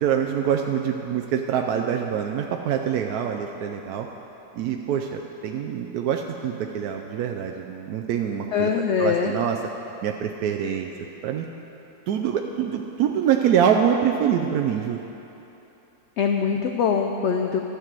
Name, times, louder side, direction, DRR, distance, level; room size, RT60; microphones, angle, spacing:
voice 1, 0.0-4.1 4.5-8.7 9.0-9.6 10.0-10.9 11.2-11.5 12.1-15.0, right 8 dB, 80° right, 3 dB, 1.1 m, -25 dB
voice 2, 8.5-9.3 16.2-17.6, left 6 dB, 70° left, 4 dB, 0.7 m, -23 dB
11.5 x 5.2 x 7.5 m, 3.0 s
omnidirectional pair, 1.6 m